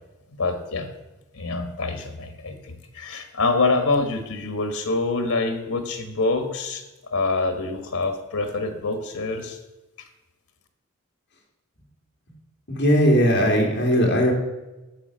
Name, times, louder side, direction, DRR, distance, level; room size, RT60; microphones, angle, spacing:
voice 1, 0.4-0.9 1.3-9.6, left 3 dB, 80° left, 7 dB, 1.4 m, -26 dB
voice 2, 12.7-14.3, equal, 50° left, 0 dB, 2.6 m, -18 dB
9.8 x 6.7 x 6.3 m, 1.1 s
head